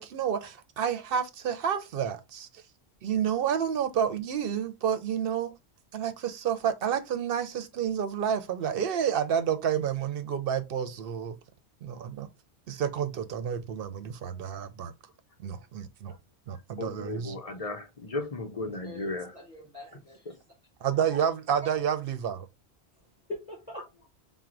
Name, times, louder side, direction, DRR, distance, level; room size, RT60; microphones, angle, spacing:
voice 1, 0.0-2.6 3.0-5.5 5.9-11.4 11.8-12.3 12.7-14.9 15.4-16.2 16.5-17.4 20.8-22.5, right 8 dB, 65° right, 0.7 m, -30 dB
voice 2, 16.8-19.3 20.3-20.4, left 2 dB, 40° left, 0.6 m, -35 dB
voice 3, 18.8-20.2 21.1-21.3 21.6-21.7 23.3-23.9, left 1 dB, 5° right, 1.2 m, -42 dB
4.6 x 2.1 x 3.6 m
omnidirectional pair, 1.1 m